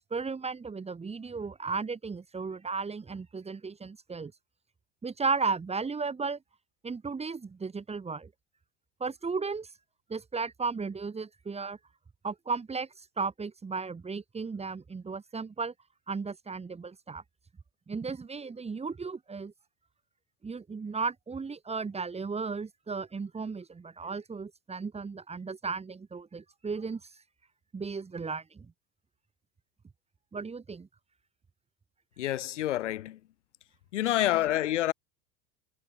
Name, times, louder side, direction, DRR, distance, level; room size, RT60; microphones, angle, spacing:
voice 1, 0.0-4.3 5.0-6.4 6.8-8.3 9.0-9.7 10.1-11.8 12.2-12.9 13.2-15.7 16.1-17.2 17.9-19.5 20.4-27.1 27.7-28.7 30.3-30.9, right 4 dB, 15° right, 2.1 m, -35 dB
voice 2, 32.2-33.2 33.9-34.9, left 13 dB, 80° left, 6.6 m, -28 dB
hypercardioid pair, 90°, 35 cm